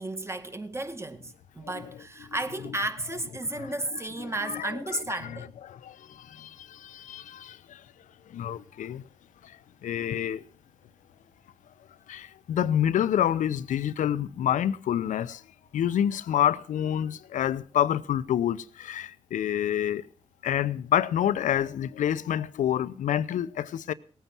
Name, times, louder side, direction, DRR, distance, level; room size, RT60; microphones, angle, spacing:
voice 1, 0.0-5.5, right 2 dB, 20° right, 2.0 m, -33 dB
voice 2, 3.4-5.4 5.6-7.8 8.3-9.0 9.4-10.5 12.1-15.4 15.7-20.0 20.4-23.9, left 10 dB, 80° left, 0.7 m, -28 dB
18.0 x 9.3 x 6.0 m
cardioid pair, 60°, 13 cm